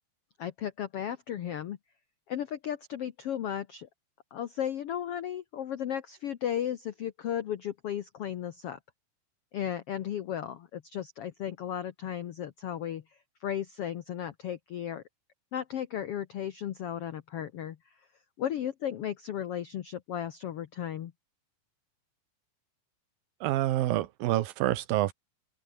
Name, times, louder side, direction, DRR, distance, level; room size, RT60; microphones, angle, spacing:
voice 1, 0.4-1.8 2.3-3.9 4.3-8.8 9.5-15.0 15.5-17.8 18.4-21.1, left 10 dB, 70° left, 1.4 m, -35 dB
voice 2, 23.4-25.1, right 14 dB, 85° right, 2.9 m, -27 dB
omnidirectional pair, 4.1 m